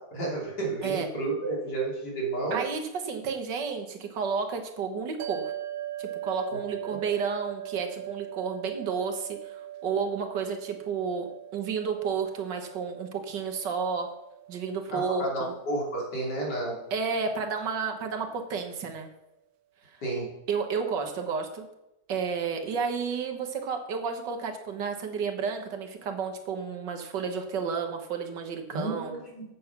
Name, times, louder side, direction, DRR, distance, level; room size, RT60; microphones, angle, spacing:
voice 1, 0.1-2.6 6.5-6.6 6.8-7.0 14.9-16.8 20.0-20.3 28.7-29.4, right 2 dB, 70° left, -3 dB, 3.7 m, -31 dB
voice 2, 2.5-5.5 6.0-14.1 14.5-15.5 16.9-19.1 19.9-20.0 20.5-21.7 22.1-29.2, right 5 dB, 85° right, 4 dB, 1.9 m, -31 dB
sound 1, 5.2-17.7, right 13 dB, 65° right, 1.1 m, -41 dB
8.5 x 7.1 x 5.9 m, 0.90 s
omnidirectional pair, 1.8 m